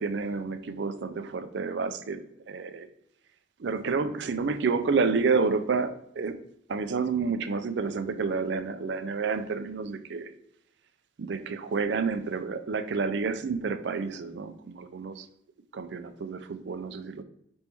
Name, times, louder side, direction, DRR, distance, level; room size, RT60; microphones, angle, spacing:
voice 1, 0.0-2.2 2.5-2.9 3.6-6.4 6.7-10.3 11.2-15.3 15.7-17.2, right 4 dB, 65° right, 10 dB, 0.4 m, -29 dB
5.2 x 2.9 x 3.5 m, 0.73 s
head